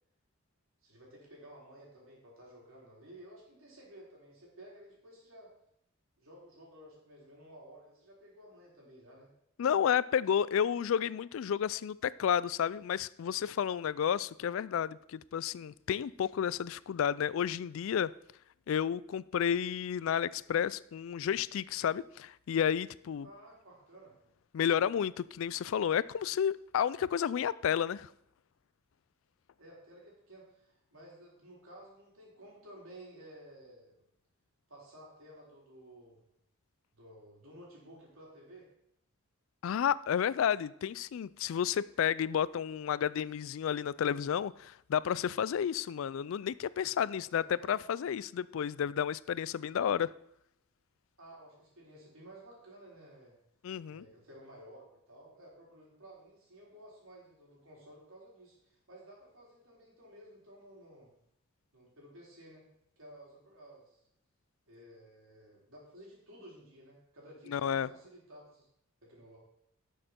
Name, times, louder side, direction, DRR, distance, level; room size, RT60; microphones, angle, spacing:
voice 1, 0.8-5.5 6.2-9.3 23.2-24.1 29.6-34.0 34.7-36.2 36.9-38.7 47.4-47.8 51.2-53.3 53.9-61.1 61.7-62.6 63.0-64.0 64.7-68.7 69.0-69.4, right 1 dB, 70° right, 3.9 m, -54 dB
voice 2, 9.6-18.1 18.7-23.3 24.5-28.1 39.6-50.1 53.6-54.0 67.5-67.9, left 8 dB, 70° left, 0.3 m, -31 dB
11.5 x 6.6 x 4.4 m
head